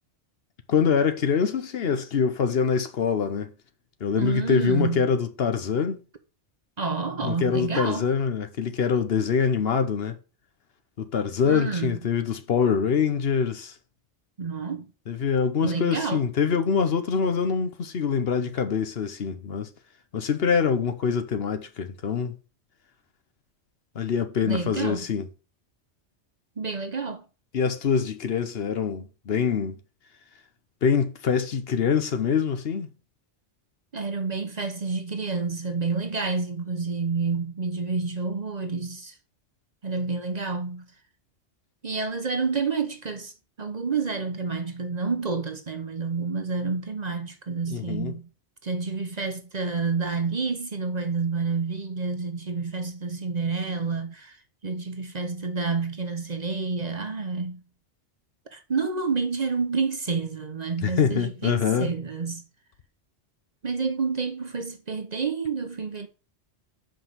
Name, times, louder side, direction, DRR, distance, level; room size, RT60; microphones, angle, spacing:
voice 1, 0.7-3.5 4.0-6.0 7.2-10.2 11.0-13.7 15.1-19.7 20.1-22.3 23.9-25.3 27.5-29.8 30.8-32.9 47.7-48.2 60.8-61.9, left 6 dB, 60° left, 1.0 m, -24 dB
voice 2, 4.2-5.1 6.8-8.1 11.4-12.0 14.4-14.9 15.6-16.2 24.4-25.0 26.6-27.2 33.9-39.1 39.8-40.8 41.8-43.3 43.6-48.3 48.6-54.4 54.6-57.6 58.5-62.4 63.6-66.1, right 4 dB, 40° right, 0.9 m, -29 dB
5.7 x 5.2 x 6.5 m
omnidirectional pair, 1.2 m